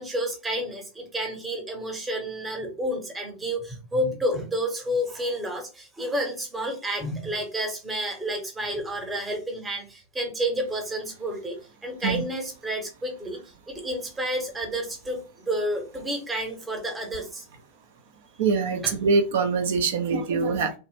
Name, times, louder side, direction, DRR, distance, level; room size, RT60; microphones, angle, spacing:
voice 1, 0.0-17.4 18.8-18.9, equal, 15° right, 3 dB, 1.0 m, -30 dB
voice 2, 18.4-20.7, right 4 dB, 55° right, 6 dB, 0.7 m, -23 dB
3.1 x 2.4 x 3.3 m, 0.32 s
figure-of-eight pair, 90°, 0 cm